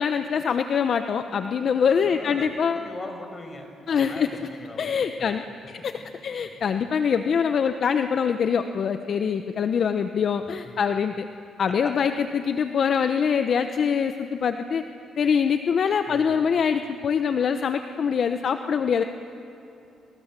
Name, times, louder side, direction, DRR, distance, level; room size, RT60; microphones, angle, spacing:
voice 1, 0.0-2.8 3.9-4.3 4.8-5.4 5.7-11.3 11.6-14.8 15.2-19.0, left 7 dB, 55° left, 8 dB, 1.0 m, -24 dB
voice 2, 2.0-5.3 6.1-6.2 6.4-6.5 6.8-6.9 10.6-10.7 11.8-12.1 16.1-16.3, left 2 dB, 30° left, 5 dB, 5.7 m, -40 dB
29.0 x 27.5 x 7.6 m, 2.8 s
cardioid pair, 90°, 0 cm